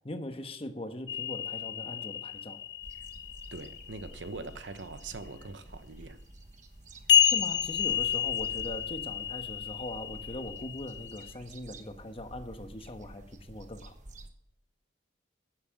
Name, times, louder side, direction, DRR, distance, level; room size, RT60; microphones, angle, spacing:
voice 1, 0.0-2.6 7.2-13.9, left 1 dB, 30° left, 1.2 m, -41 dB
sound 1, 1.1-4.2 7.1-11.3, left 9 dB, 65° left, 0.8 m, -30 dB
sound 2, 2.8-14.3, right 1 dB, 45° right, 1.3 m, -50 dB
voice 2, 3.5-6.2, right 3 dB, 85° right, 1.0 m, -42 dB
10.5 x 10.0 x 7.7 m
head